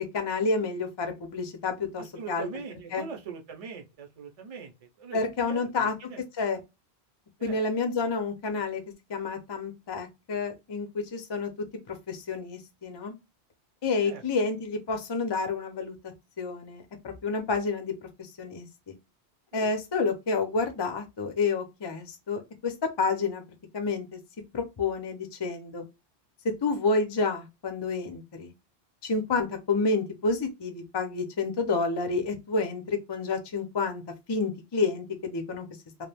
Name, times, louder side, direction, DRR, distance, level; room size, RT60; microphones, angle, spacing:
voice 1, 0.1-2.5 2.9-3.1 5.1-5.9 6.4-6.6 7.4-8.8 9.1-11.5 11.9-13.1 13.8-16.0 16.4-17.9 18.4-18.9 19.5-23.4 23.7-24.2 24.5-25.8 26.4-28.5 29.0-34.0 34.3-35.7, left 4 dB, 35° left, 0.4 m, -29 dB
voice 2, 2.0-5.2 5.5-6.2 7.4-7.6 14.0-14.2 19.5-19.7, right 5 dB, 40° right, 0.6 m, -41 dB
2.4 x 2.1 x 3.3 m
omnidirectional pair, 1.1 m